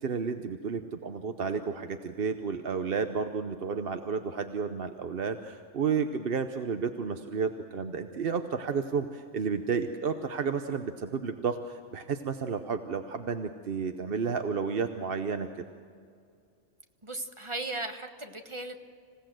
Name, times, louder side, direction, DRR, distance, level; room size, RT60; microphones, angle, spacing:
voice 1, 0.0-15.6, right 5 dB, 55° right, 7 dB, 1.0 m, -32 dB
voice 2, 17.0-18.8, right 2 dB, 25° right, 6 dB, 1.3 m, -37 dB
27.0 x 16.5 x 7.7 m, 2.3 s
omnidirectional pair, 1.2 m